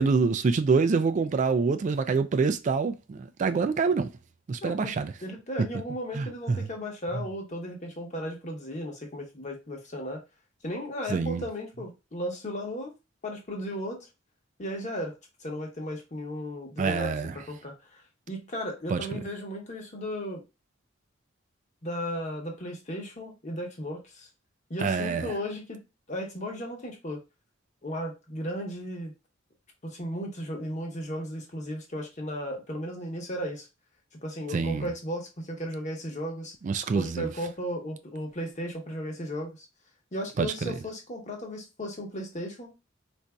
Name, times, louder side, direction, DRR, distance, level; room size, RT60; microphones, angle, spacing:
voice 1, 0.0-4.1 4.5-5.1 6.1-6.6 11.1-11.4 16.8-17.3 18.9-19.0 24.8-25.3 34.5-34.9 36.6-37.3 40.4-40.5, right 4 dB, 40° right, 0.3 m, -26 dB
voice 2, 4.6-4.9 5.2-10.2 10.6-12.9 13.2-14.0 14.6-15.1 15.4-20.4 21.8-24.3 24.7-25.8 26.1-27.2 27.8-29.1 29.8-33.7 34.2-36.5 36.9-39.7 40.1-42.7, equal, 40° left, 1.0 m, -35 dB
4.0 x 2.6 x 2.2 m
head